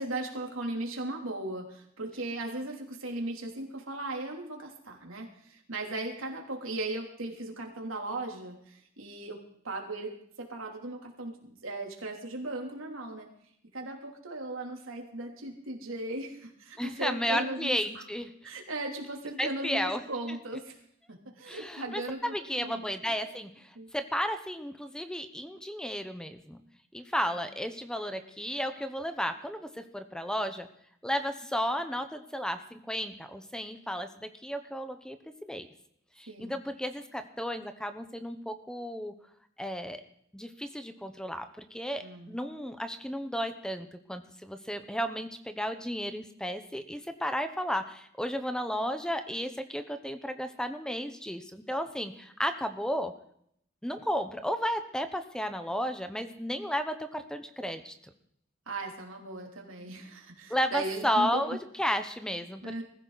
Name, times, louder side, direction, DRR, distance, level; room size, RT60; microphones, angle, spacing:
voice 1, 0.0-13.3 13.7-18.0 18.4-20.8 21.1-22.9 23.7-23.9 27.2-27.4 36.3-36.6 42.0-42.3 58.7-61.4 62.6-62.8, right 2 dB, 90° right, 1 dB, 3.2 m, -37 dB
voice 2, 16.8-18.3 19.4-20.0 20.3-20.4 21.5-26.6 26.9-30.7 31.0-35.7 36.2-39.1 39.6-40.0 40.3-53.1 53.8-57.9 60.5-62.8, equal, 5° left, 8 dB, 0.9 m, -33 dB
21.0 x 15.0 x 4.1 m, 0.69 s
head